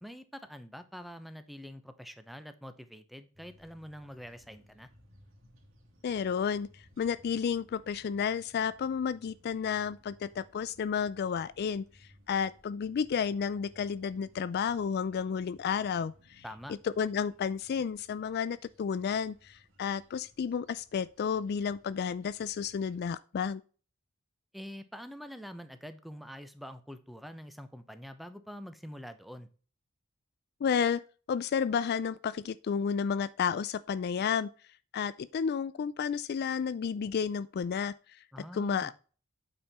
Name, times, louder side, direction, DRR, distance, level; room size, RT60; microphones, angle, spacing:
voice 1, 0.0-4.9 16.4-16.7 24.5-29.5 38.3-38.9, equal, ahead, 0.7 m, -45 dB
sound 1, 3.3-23.0, equal, 70° right, 3.1 m, -62 dB
voice 2, 6.0-16.4 16.7-23.6 30.6-31.0 31.3-34.5 34.9-37.9 38.5-38.9, left 6 dB, 50° left, 0.3 m, -31 dB
8.7 x 5.4 x 4.1 m
head